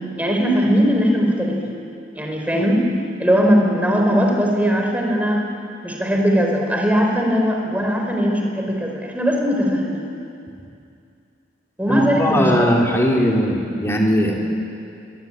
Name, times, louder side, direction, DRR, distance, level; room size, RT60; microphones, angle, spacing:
voice 1, 0.2-1.7 2.1-2.9 3.2-5.4 5.8-10.1 11.8-12.8 13.1-13.2, equal, 10° right, 1 dB, 4.3 m, -19 dB
voice 2, 11.9-14.4, equal, 15° left, -1 dB, 3.6 m, -18 dB
28.0 x 22.5 x 9.1 m, 2.5 s
head